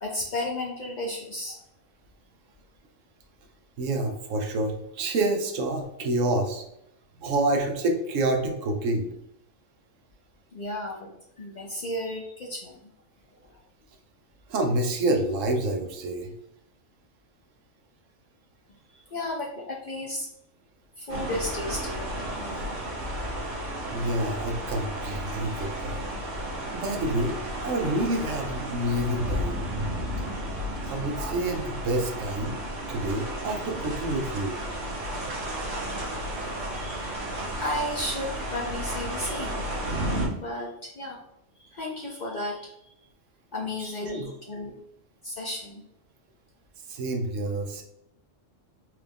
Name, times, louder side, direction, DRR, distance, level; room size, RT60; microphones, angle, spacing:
voice 1, 0.0-1.6 10.5-11.1 11.4-12.8 18.9-20.3 21.0-22.1 22.3-22.8 23.3-23.5 36.7-37.1 37.6-39.7 40.4-41.2 41.6-42.7 43.5-44.7 45.2-45.8, left 1 dB, 50° left, -1 dB, 0.6 m, -33 dB
voice 2, 3.8-6.6 7.2-9.1 14.5-16.3 23.9-26.0 26.7-29.7 30.9-32.6 32.9-34.6 44.0-44.3 46.9-47.8, right 1 dB, 80° right, 3 dB, 1.1 m, -28 dB
sound 1, 21.1-40.3, equal, 55° right, 1.2 m, -33 dB
4.5 x 2.4 x 3.4 m, 0.79 s
omnidirectional pair, 1.3 m